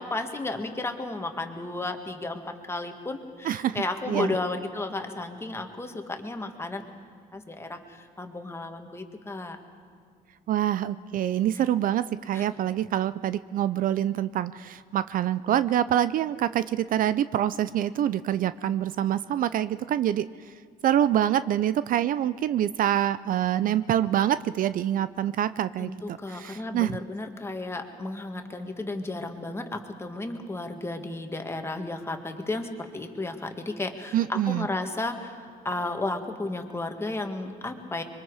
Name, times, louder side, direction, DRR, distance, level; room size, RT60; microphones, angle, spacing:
voice 1, 0.0-6.8 7.3-9.6 12.3-12.5 25.8-35.4 35.6-38.0, left 2 dB, 15° left, 5 dB, 1.8 m, -33 dB
voice 2, 3.4-4.3 10.5-20.5 20.8-26.9 34.1-34.7, right 11 dB, 55° right, 15 dB, 0.5 m, -26 dB
25.0 x 23.0 x 4.9 m, 2.3 s
cardioid pair, 110°, 17 cm